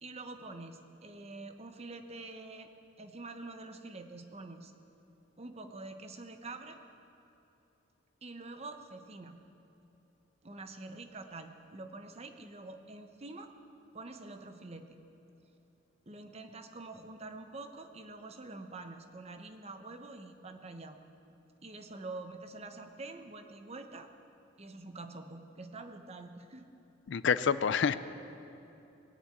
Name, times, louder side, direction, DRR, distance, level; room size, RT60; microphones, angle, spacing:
voice 1, 0.0-2.7 3.0-4.7 5.4-6.8 8.2-9.4 10.4-13.5 13.9-15.0 16.1-21.0 21.6-24.1 24.6-26.7, right 2 dB, 35° right, 7 dB, 0.9 m, -46 dB
voice 2, 27.1-28.0, left 6 dB, 65° left, 14 dB, 0.4 m, -27 dB
20.0 x 7.2 x 8.5 m, 3.0 s
head